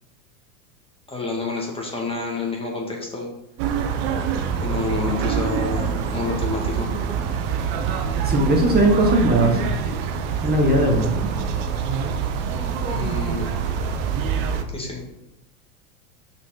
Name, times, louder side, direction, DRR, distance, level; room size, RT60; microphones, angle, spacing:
voice 1, 1.1-3.3 4.6-6.9 12.9-13.6 14.7-15.0, left 3 dB, 10° left, -1 dB, 1.9 m, -28 dB
sound 1, 3.6-14.6, right 7 dB, 50° right, 1.1 m, -25 dB
voice 2, 8.2-9.6 10.4-11.2, right 1 dB, 20° right, 0 dB, 1.6 m, -18 dB
6.2 x 5.1 x 5.8 m, 0.85 s
hypercardioid pair, 110°, 44 cm